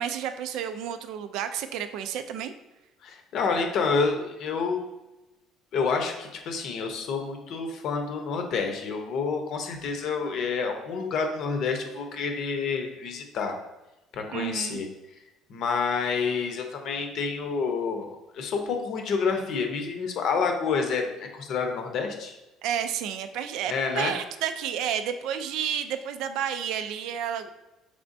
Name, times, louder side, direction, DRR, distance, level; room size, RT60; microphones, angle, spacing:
voice 1, 0.0-2.5 14.3-14.8 22.6-27.5, right 9 dB, 75° right, 10 dB, 0.3 m, -31 dB
voice 2, 3.0-4.8 5.7-13.6 14.1-14.9 15.5-18.1 18.3-22.4 23.7-24.1, left 5 dB, 60° left, 4 dB, 0.7 m, -28 dB
5.0 x 3.3 x 2.6 m, 0.98 s
cardioid pair, 130°, 0 cm